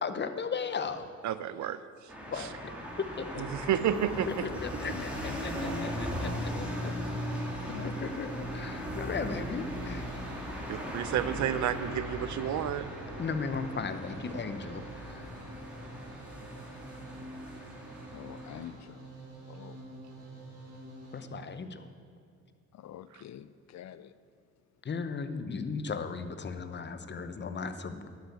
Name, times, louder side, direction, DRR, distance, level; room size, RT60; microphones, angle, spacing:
voice 1, 0.0-1.1 2.3-2.5 3.0-3.4 4.3-6.7 7.8-10.1 10.6-11.1 13.2-15.3 21.1-21.9 24.8-28.1, left 5 dB, 35° left, 9 dB, 0.9 m, -36 dB
voice 2, 1.2-1.8 3.5-4.3 10.7-12.9, right 10 dB, 70° right, 13 dB, 0.7 m, -30 dB
sound 1, 2.1-18.7, equal, 5° right, 2.4 m, -38 dB
voice 3, 4.9-5.4 5.9-6.1 6.8-7.0 7.7-7.9 18.1-19.0 19.5-19.8 22.7-24.1, left 11 dB, 60° left, 15 dB, 0.5 m, -46 dB
sound 2, 6.5-21.2, right 1 dB, 55° right, 3.4 m, -49 dB
11.5 x 6.7 x 8.3 m, 2.4 s
cardioid pair, 90°, 30 cm